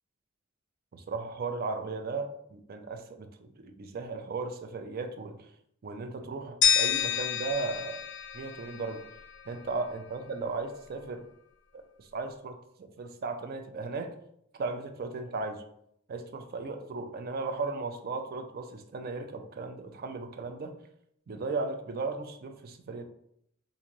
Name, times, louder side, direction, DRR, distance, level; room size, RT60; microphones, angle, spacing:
voice 1, 0.9-5.5 5.8-8.0 8.3-9.0 9.5-11.2 11.7-14.1 14.6-15.6 16.1-20.7 21.3-23.0, right 3 dB, 45° right, 6 dB, 0.4 m, -36 dB
sound 1, 6.6-9.5, left 7 dB, 60° left, 0.5 m, -29 dB
3.0 x 2.6 x 3.7 m, 0.73 s
head